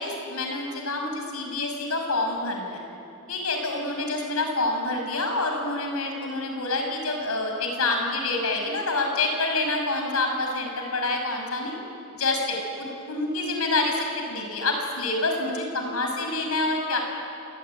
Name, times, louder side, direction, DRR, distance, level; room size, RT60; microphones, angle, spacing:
voice 1, 0.0-2.8 3.3-11.8 12.1-17.0, left 2 dB, 90° left, 3 dB, 6.0 m, -27 dB
27.0 x 21.0 x 9.2 m, 2.7 s
head